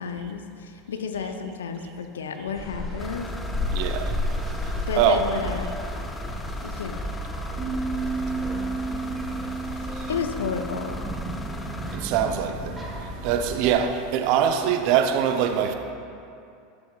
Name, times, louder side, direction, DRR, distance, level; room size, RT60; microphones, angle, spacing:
voice 1, 0.0-3.3 4.7-5.7 6.6-7.1 10.1-11.0, left 6 dB, 80° left, 0.5 m, -32 dB
sound 1, 2.5-13.7, left 1 dB, 10° right, 1.4 m, -33 dB
sound 2, 3.0-12.0, left 2 dB, 10° left, 0.5 m, -39 dB
voice 2, 3.7-4.1 5.0-5.5 10.0-10.1 11.9-12.8 13.2-15.7, right 8 dB, 55° right, 0.5 m, -23 dB
sound 3, 7.6-12.7, right 4 dB, 30° right, 1.2 m, -34 dB
10.5 x 7.1 x 2.3 m
hypercardioid pair, 85°, 0 cm